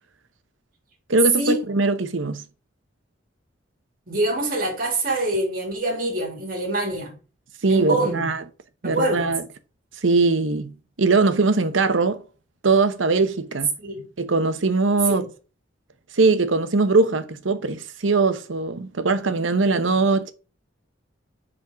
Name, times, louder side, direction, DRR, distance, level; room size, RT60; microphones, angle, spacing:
voice 1, 1.1-2.4 7.6-8.4 8.8-9.4 10.0-12.2 12.6-13.7 14.2-15.3 16.1-20.3, right 3 dB, 85° right, 0.9 m, -21 dB
voice 2, 4.1-7.1 7.7-8.3 8.8-9.3 13.8-14.1 15.1-15.2, right 1 dB, 50° right, 2.8 m, -25 dB
5.4 x 5.2 x 4.6 m
head